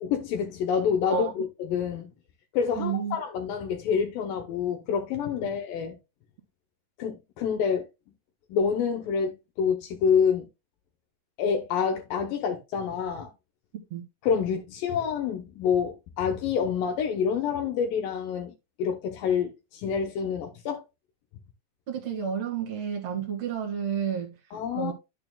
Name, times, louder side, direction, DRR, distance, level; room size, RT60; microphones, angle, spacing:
voice 1, 0.0-2.1 2.5-6.0 7.0-7.9 8.5-10.5 11.4-13.3 14.2-18.5 18.8-20.8 24.5-24.9, left 7 dB, 80° left, 2.7 m, -27 dB
voice 2, 2.8-3.2 13.9-14.0 21.9-24.3 24.7-24.9, right 8 dB, 50° right, 2.6 m, -30 dB
11.0 x 6.7 x 2.3 m
omnidirectional pair, 4.0 m